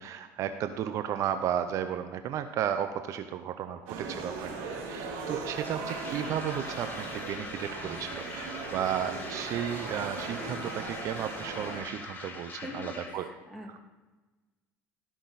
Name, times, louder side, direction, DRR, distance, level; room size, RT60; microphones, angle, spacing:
voice 1, 0.0-4.5 4.9-13.3, right 9 dB, 60° right, 9 dB, 0.6 m, -34 dB
sound 1, 3.9-11.8, right 4 dB, 85° right, 3.1 m, -38 dB
sound 2, 5.5-13.2, left 3 dB, 30° left, 1.8 m, -43 dB
voice 2, 12.5-13.8, left 2 dB, ahead, 0 dB, 2.5 m, -43 dB
16.5 x 6.1 x 4.1 m, 1.2 s
supercardioid pair, 95°, 6 cm